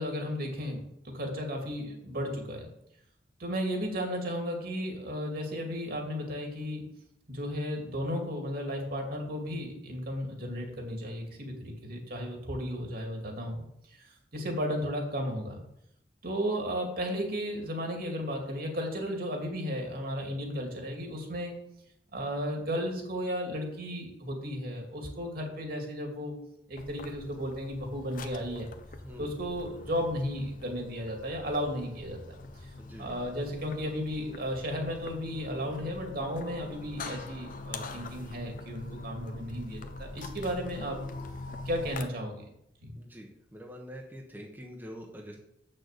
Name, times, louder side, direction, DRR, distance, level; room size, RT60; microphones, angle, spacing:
voice 1, 0.0-2.7 3.4-6.9 7.3-15.6 16.2-21.6 22.1-26.3 26.7-28.7 29.2-32.2 33.0-41.0 41.6-42.4 42.8-43.0, equal, 55° right, 2 dB, 2.5 m, -34 dB
sound 1, 26.8-42.0, left 2 dB, 50° left, 0.9 m, -43 dB
voice 2, 32.7-33.1 42.9-45.4, equal, 10° right, 0 dB, 1.2 m, -45 dB
8.4 x 6.6 x 6.7 m, 0.78 s
head